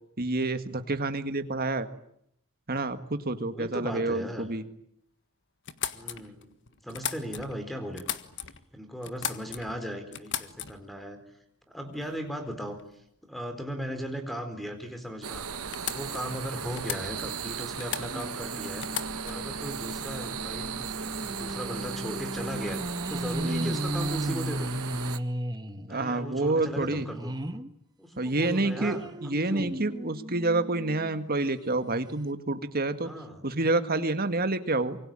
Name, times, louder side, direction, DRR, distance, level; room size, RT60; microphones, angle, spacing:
voice 1, 0.2-1.9 2.7-4.6 23.4-23.7 25.9-27.1 28.2-33.1 33.4-35.0, right 2 dB, 45° right, 10 dB, 1.8 m, -28 dB
voice 2, 3.4-4.5 5.9-6.5 6.8-8.1 8.7-11.2 11.7-12.8 13.2-18.9 19.2-22.8 23.1-24.7 25.9-27.3 28.0-29.7 33.0-33.4, equal, ahead, 8 dB, 4.2 m, -37 dB
sound 1, 5.6-7.6 7.9-8.6 9.0-9.8 10.1-10.9 11.9-12.1 12.5-12.9 14.8-14.9 15.2-15.3 15.7-16.3 16.7-17.4 17.8-18.4 18.8-19.5, left 9 dB, 55° left, 1.6 m, -37 dB
sound 2, 15.2-25.2, right 7 dB, 80° right, 1.6 m, -36 dB
sound 3, 18.1-27.7 28.1-31.2 31.7-31.8 32.1-32.2, right 1 dB, 20° right, 1.4 m, -36 dB
26.5 x 24.0 x 8.9 m, 0.73 s
head